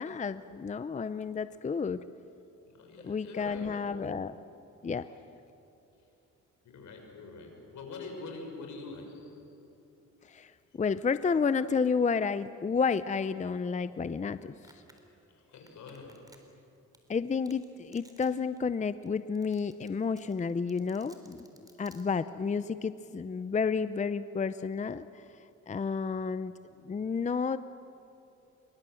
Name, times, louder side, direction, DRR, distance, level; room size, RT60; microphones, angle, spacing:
voice 1, 0.0-2.0 3.0-4.4 4.8-5.1 10.2-14.4 17.1-25.2 25.7-26.5 26.8-27.6, left 5 dB, 25° left, 13 dB, 0.6 m, -31 dB
voice 2, 2.6-4.1 6.6-9.5 15.3-16.3, left 3 dB, 75° left, 3 dB, 5.9 m, -45 dB
Domestic sounds home sounds, 14.6-15.0 15.7-16.6 16.9-17.0 17.5-17.6 17.9-18.3 18.6-18.7 19.1-19.2 19.4-19.9 20.2-22.0, right 1 dB, 10° right, 4.0 m, -56 dB
26.0 x 23.5 x 7.8 m, 2.7 s
cardioid pair, 90°, 30 cm